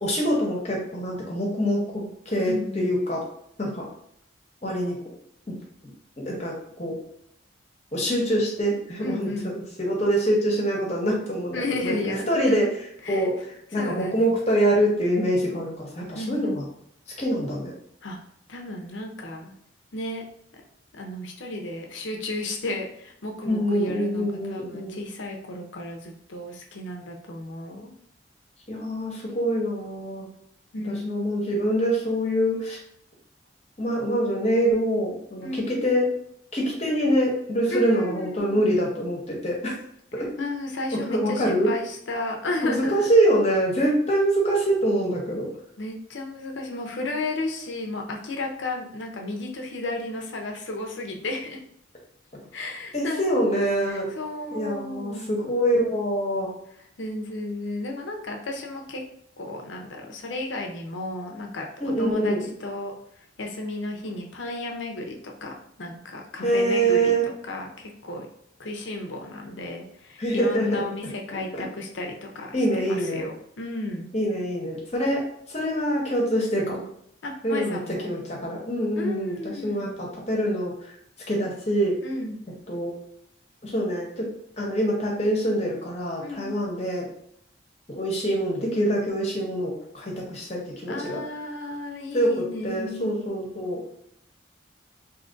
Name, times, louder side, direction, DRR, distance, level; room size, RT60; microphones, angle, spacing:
voice 1, 0.0-3.2 3.6-3.9 4.6-5.0 6.2-7.0 7.9-12.7 13.1-13.3 13.7-16.7 17.2-17.7 23.4-25.0 28.7-30.3 30.8-32.8 33.8-36.1 36.5-39.7 40.1-40.3 40.9-41.7 42.6-45.5 52.3-52.4 52.9-54.1 54.5-56.5 61.8-62.5 66.4-67.3 70.2-70.8 71.3-71.6 72.5-73.3 74.1-76.8 77.4-80.9 81.3-82.0 82.7-82.9 83.6-84.3 84.6-87.1 87.9-91.2 92.1-93.8, right 1 dB, 35° left, -2 dB, 0.9 m, -25 dB
voice 2, 2.5-3.0 9.0-9.5 11.5-12.7 13.0-13.3 13.7-14.4 16.1-16.6 18.0-18.2 18.5-19.5 19.9-20.2 20.5-20.6 20.9-27.9 30.7-31.5 35.4-35.7 37.7-38.8 40.4-43.1 45.8-51.6 52.5-53.5 53.9-55.4 57.0-59.0 59.4-61.7 62.0-62.9 63.4-65.2 65.4-67.1 67.4-68.3 68.6-74.1 77.2-78.1 79.0-79.9 82.0-82.4 86.2-86.6 90.9-93.2, left 2 dB, 75° left, 2 dB, 0.6 m, -33 dB
2.8 x 2.5 x 3.8 m, 0.72 s
head